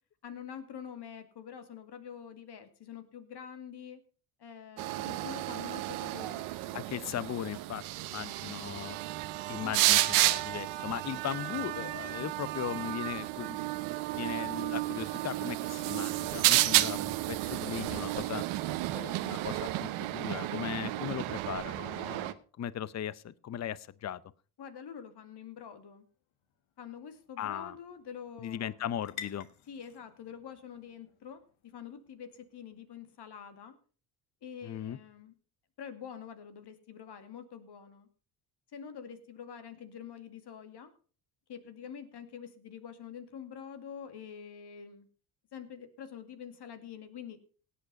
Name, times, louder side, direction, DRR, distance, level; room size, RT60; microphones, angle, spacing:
voice 1, 0.2-4.0 4.4-6.5 9.6-9.9 24.6-26.1 26.8-28.8 29.7-33.8 34.4-35.3 35.8-38.1 38.7-40.9 41.5-45.1 45.5-47.4, left 8 dB, 50° left, 9 dB, 2.3 m, -46 dB
sound 1, 4.8-22.3, right 17 dB, 75° right, 1.1 m, -32 dB
voice 2, 6.7-7.8 8.1-9.0 9.5-13.7 14.1-18.4 18.9-24.2 27.4-27.8 28.4-29.5 34.6-35.0, left 10 dB, 35° left, 20 dB, 0.7 m, -38 dB
sound 2, 25.8-33.4, left 10 dB, 65° left, 1.8 m, -53 dB
17.0 x 8.5 x 5.3 m, 0.39 s
hypercardioid pair, 60°, 50 cm